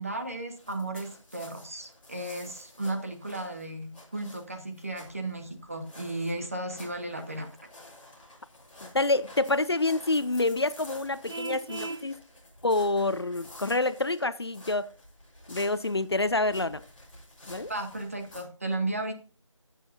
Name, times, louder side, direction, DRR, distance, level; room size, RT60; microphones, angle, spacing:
voice 1, 0.0-7.5 17.7-19.1, right 2 dB, 25° right, 0.9 m, -34 dB
sound 1, 0.6-18.4, left 1 dB, 15° left, 4.3 m, -51 dB
voice 2, 8.8-12.1 12.6-14.9 15.5-16.8 17.5-17.7, left 2 dB, 50° left, 0.4 m, -27 dB
Vehicle horn car horn honking, 11.3-12.1, right 3 dB, 55° right, 0.5 m, -36 dB
14.0 x 7.3 x 2.6 m
figure-of-eight pair, 170°, 17 cm